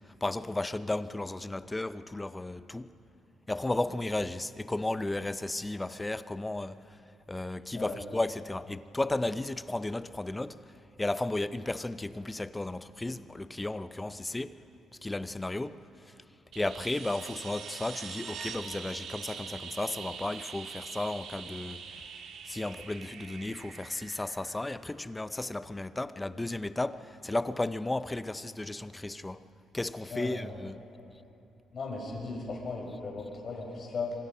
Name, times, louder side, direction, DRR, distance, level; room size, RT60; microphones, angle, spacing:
voice 1, 0.0-2.9 3.5-7.0 7.3-14.6 15.0-16.2 16.5-21.9 22.5-29.5 29.7-30.8, left 2 dB, 15° left, 0.7 m, -34 dB
sound 1, 16.5-25.2 27.5-27.6, right 6 dB, 75° right, 1.8 m, -44 dB
voice 2, 30.1-30.4 30.9-31.1 31.7-34.1, left 4 dB, 45° left, 7.0 m, -37 dB
26.5 x 25.0 x 5.6 m
cardioid pair, 90°, 0 cm